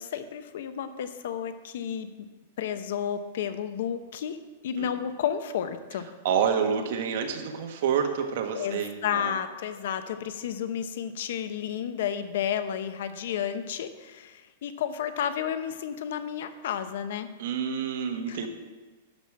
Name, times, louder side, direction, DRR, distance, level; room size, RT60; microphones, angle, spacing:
voice 1, 0.0-2.3 2.6-4.4 4.6-6.1 8.5-17.3 18.2-18.5, left 9 dB, 65° left, 11 dB, 0.8 m, -32 dB
voice 2, 6.2-9.3 17.4-18.5, right 7 dB, 55° right, 4 dB, 1.5 m, -28 dB
11.5 x 5.0 x 7.4 m, 1.3 s
supercardioid pair, 160°, 0 cm